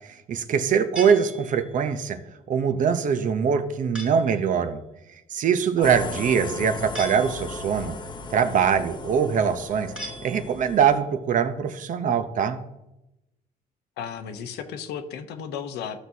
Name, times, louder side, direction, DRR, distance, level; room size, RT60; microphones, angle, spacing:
voice 1, 0.1-2.2 2.5-4.8 5.3-8.0 8.3-9.9 10.2-12.6, right 7 dB, 50° right, 9 dB, 0.8 m, -23 dB
sound 1, 1.0-1.9 3.9-4.4 6.9-7.8 10.0-10.8, right 1 dB, 5° right, 1.9 m, -39 dB
voice 2, 5.8-6.1 14.0-16.0, left 7 dB, 80° left, 8 dB, 0.9 m, -34 dB
sound 2, 5.8-11.0, left 3 dB, 25° left, 0.8 m, -37 dB
14.0 x 6.1 x 2.8 m, 0.93 s
cardioid pair, 110°, 17 cm